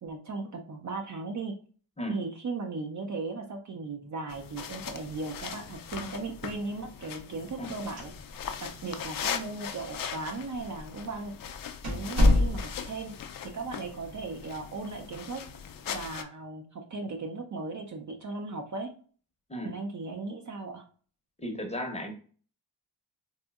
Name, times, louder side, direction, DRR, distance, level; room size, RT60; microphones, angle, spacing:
voice 1, 0.0-1.5 2.1-8.1 8.6-11.5 11.8-13.1 13.4-15.4 15.9-18.9 19.6-20.8, right 3 dB, 40° right, 4 dB, 0.5 m, -37 dB
sound 1, 4.3-16.2, left 8 dB, 50° left, 0.4 m, -40 dB
sound 2, 7.9-8.6 8.8-8.9 9.7-9.8 10.6-10.8 11.2-11.3 11.8-13.0, left 1 dB, 80° right, 1.4 m, -25 dB
voice 2, 21.4-22.1, equal, 15° left, 2 dB, 0.7 m, -34 dB
4.1 x 2.6 x 2.3 m, 0.41 s
cardioid pair, 110°, 45 cm